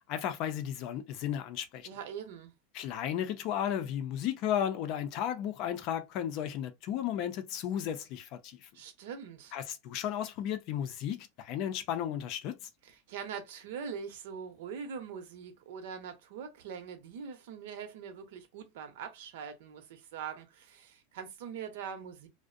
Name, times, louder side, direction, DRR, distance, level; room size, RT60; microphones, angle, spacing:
voice 1, 0.1-1.9 2.7-8.7 9.5-12.7, left 10 dB, 45° left, 0.5 m, -34 dB
voice 2, 1.9-2.5 8.7-9.5 12.9-22.3, right 7 dB, 70° right, 0.8 m, -43 dB
2.5 x 2.0 x 2.5 m
supercardioid pair, 145°, 0 cm